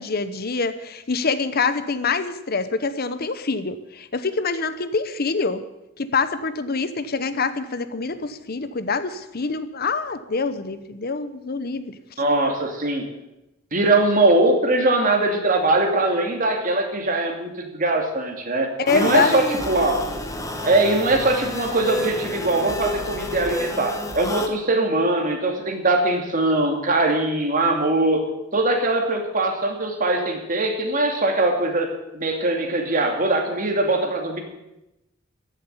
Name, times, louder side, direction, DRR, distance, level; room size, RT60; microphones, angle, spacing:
voice 1, 0.0-5.6 6.0-11.9 18.8-19.4, left 4 dB, 50° left, 12 dB, 0.8 m, -25 dB
voice 2, 12.2-13.1 13.7-20.0 20.6-28.2 28.5-34.4, right 2 dB, 40° right, 3 dB, 2.5 m, -21 dB
sound 1, 18.9-24.5, left 1 dB, 15° left, 1.4 m, -29 dB
15.0 x 7.5 x 9.8 m, 0.94 s
head